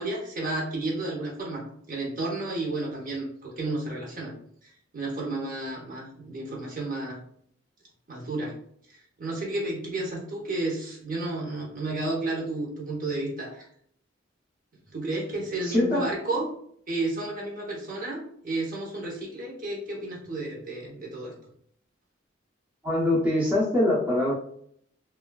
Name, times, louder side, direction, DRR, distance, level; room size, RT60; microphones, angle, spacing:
voice 1, 0.0-4.3 4.6-7.2 8.1-8.5 8.9-13.7 14.9-16.5 16.9-21.3, right 2 dB, 45° right, -3 dB, 0.8 m, -32 dB
voice 2, 15.6-16.1 22.8-24.3, left 1 dB, 10° right, -7 dB, 0.6 m, -23 dB
3.0 x 2.3 x 2.2 m, 0.64 s
head